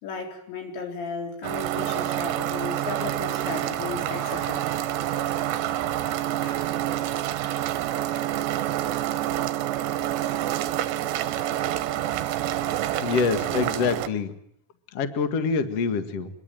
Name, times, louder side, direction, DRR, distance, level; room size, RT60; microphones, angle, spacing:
voice 1, 0.0-4.7 5.7-5.8 6.3-6.9 7.4-7.5, left 4 dB, 60° left, 6.1 m, -35 dB
sound 1, 1.4-14.1, right 12 dB, 70° right, 3.0 m, -27 dB
voice 2, 13.0-14.3 14.9-16.3, left 5 dB, 75° left, 1.4 m, -25 dB
25.5 x 22.0 x 9.2 m
omnidirectional pair, 6.0 m